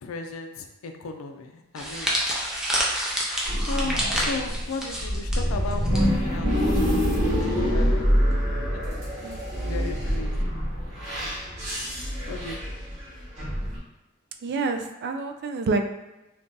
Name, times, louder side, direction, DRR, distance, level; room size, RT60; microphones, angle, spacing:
voice 1, 0.0-2.1 3.7-8.5 8.7-9.0 9.5-11.4 12.3-12.8, left 3 dB, 90° left, 5 dB, 0.4 m, -36 dB
sound 1, 1.8-6.0 6.3-6.5 7.4-7.7, equal, 5° right, 0.5 m, -28 dB
sound 2, 3.4-13.8, equal, 35° right, 1.2 m, -25 dB
voice 2, 9.2-9.9 14.4-15.8, right 3 dB, 55° right, 5 dB, 0.3 m, -28 dB
2.6 x 2.3 x 3.7 m, 1.0 s
head